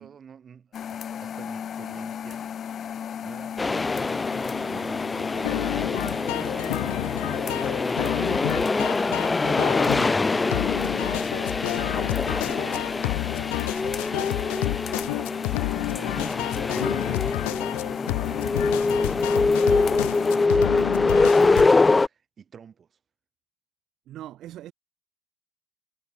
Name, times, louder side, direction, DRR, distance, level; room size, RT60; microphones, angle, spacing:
voice 1, 0.0-2.5 3.2-9.9 10.2-23.0, right 7 dB, 40° right, 4.7 m, -48 dB
sound 1, 0.7-20.5, left 8 dB, 45° left, 0.9 m, -35 dB
sound 2, 3.6-22.1, left 3 dB, 20° left, 1.3 m, -24 dB
sound 3, 5.4-21.7, left 40 dB or more, 85° left, 1.5 m, -30 dB
voice 2, 8.1-8.6 12.0-12.2 24.1-24.7, right 13 dB, 60° right, 1.6 m, -42 dB
supercardioid pair, 90°, 0 cm